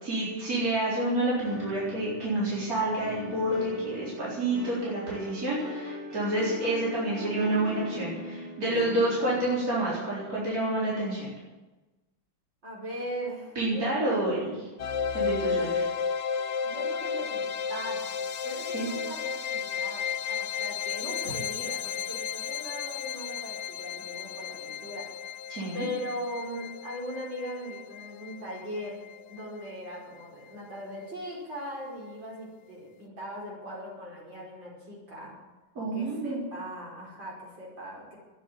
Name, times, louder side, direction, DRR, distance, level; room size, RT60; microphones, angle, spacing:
voice 1, 0.0-11.3 13.6-14.5 15.1-15.9 18.7-18.9 25.5-25.9 35.8-36.4, right 1 dB, 45° right, -7 dB, 4.6 m, -28 dB
sound 1, 1.4-9.7, left 1 dB, 20° right, 3.4 m, -41 dB
voice 2, 12.6-14.3 16.6-18.2 18.4-25.1 25.7-29.0 29.3-35.3 35.9-38.2, equal, 65° right, -4 dB, 6.1 m, -39 dB
sound 2, 14.8-29.8, left 7 dB, 75° left, 0.6 m, -33 dB
13.0 x 10.0 x 9.2 m, 1.2 s
omnidirectional pair, 2.2 m